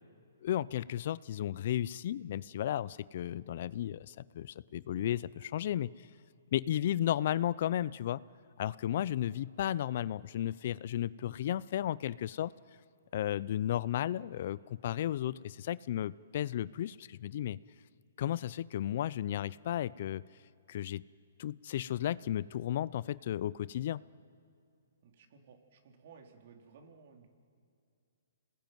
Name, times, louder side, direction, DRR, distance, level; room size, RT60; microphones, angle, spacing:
voice 1, 0.4-6.1 6.5-8.2 8.6-12.5 13.1-17.6 18.2-20.2 20.7-21.0 21.4-24.0, left 11 dB, 50° left, 19 dB, 0.6 m, -34 dB
voice 2, 25.0-27.3, right 5 dB, 55° right, 3 dB, 3.8 m, -57 dB
28.0 x 20.0 x 9.3 m, 2.5 s
hypercardioid pair, 145°, 0 cm